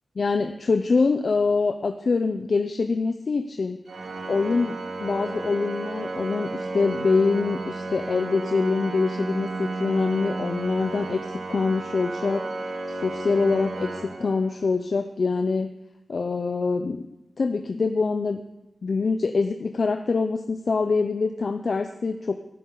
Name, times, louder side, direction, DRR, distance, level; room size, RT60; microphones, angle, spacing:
voice 1, 0.2-3.8 4.3-12.7 13.0-15.7 16.1-17.0 17.4-18.4 18.8-22.4, left 4 dB, 55° left, 7 dB, 0.6 m, -24 dB
Organ, 3.9-14.8, right 2 dB, 85° right, 2.4 m, -33 dB
17.5 x 11.0 x 3.9 m, 0.93 s
wide cardioid pair, 125°, 0 cm